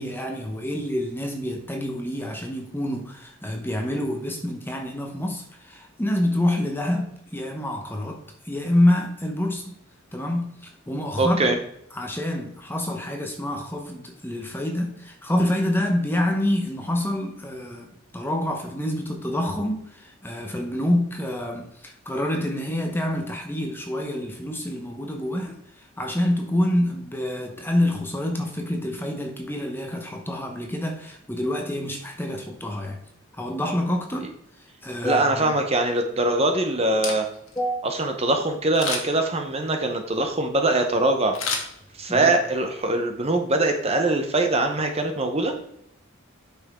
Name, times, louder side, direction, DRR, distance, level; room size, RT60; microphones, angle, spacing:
voice 1, 0.0-9.7 10.1-11.6 11.9-33.0 33.4-34.3 34.6-35.6 37.6-37.8 42.1-42.3 43.9-44.0, left 1 dB, 10° left, 1.0 m, -27 dB
voice 2, 11.2-11.5 35.0-37.3 37.8-41.4 42.0-45.5, right 2 dB, 30° right, 0.8 m, -22 dB
Camera, 37.0-37.6 38.7-39.3 41.3-42.3 42.7-42.8, left 4 dB, 80° left, 1.7 m, -30 dB
8.7 x 6.1 x 3.6 m
head